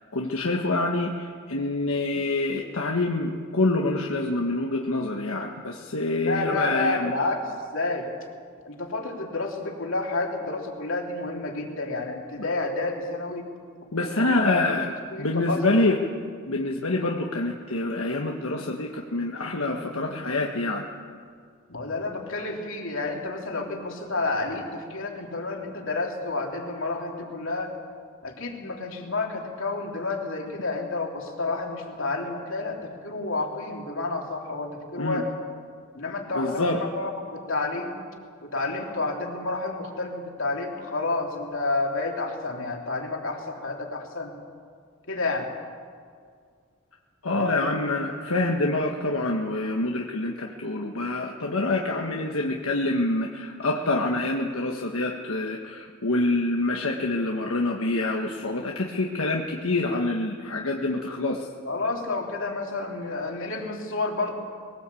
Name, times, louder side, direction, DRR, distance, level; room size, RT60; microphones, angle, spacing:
voice 1, 0.1-7.1 13.9-14.9 15.2-16.0 16.5-20.9 35.0-35.2 36.3-36.8 47.2-61.5, left 2 dB, 80° left, 0 dB, 1.6 m, -26 dB
voice 2, 6.2-7.4 7.7-8.1 8.6-13.5 14.0-14.6 15.1-15.8 21.7-27.7 28.2-35.3 35.9-38.0 38.4-44.3 45.1-45.5 47.3-47.7 61.7-64.3, left 3 dB, 65° left, 0 dB, 3.5 m, -30 dB
21.5 x 19.0 x 8.5 m, 2.1 s
head